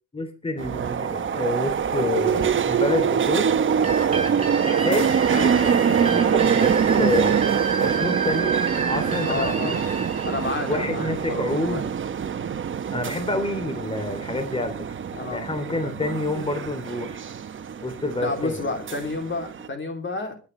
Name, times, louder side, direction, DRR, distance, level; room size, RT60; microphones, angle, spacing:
voice 1, 0.1-3.5 4.6-7.4 7.8-9.7 10.7-11.8 12.9-14.7 15.3-17.3 17.8-18.6, left 2 dB, 20° left, 7 dB, 3.0 m, -28 dB
sound 1, 0.6-19.7, right 7 dB, 40° right, 1.0 m, -24 dB
sound 2, 3.8-11.4, right 4 dB, 20° right, 8.0 m, -31 dB
voice 2, 9.2-9.9 10.2-11.8 15.2-15.4 15.7-15.9 18.2-20.4, left 3 dB, 40° left, 5 dB, 3.1 m, -30 dB
25.0 x 10.0 x 3.3 m, 0.32 s
cardioid pair, 90°, 30 cm